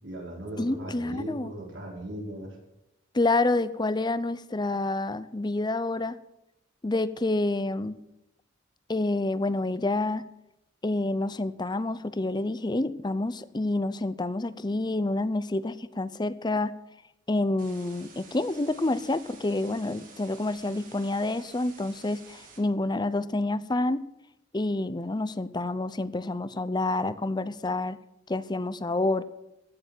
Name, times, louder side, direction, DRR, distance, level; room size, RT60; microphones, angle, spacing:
voice 1, 0.0-2.6, right 1 dB, 70° right, -2 dB, 5.0 m, -38 dB
voice 2, 0.6-1.5 3.1-6.2 6.8-8.0 8.9-10.3 10.8-16.8 17.3-24.0 24.5-28.0 28.3-29.2, left 2 dB, 20° left, 15 dB, 0.6 m, -28 dB
sound 1, 17.6-22.6, right 5 dB, 45° right, 3.6 m, -51 dB
15.5 x 6.9 x 9.1 m, 0.88 s
head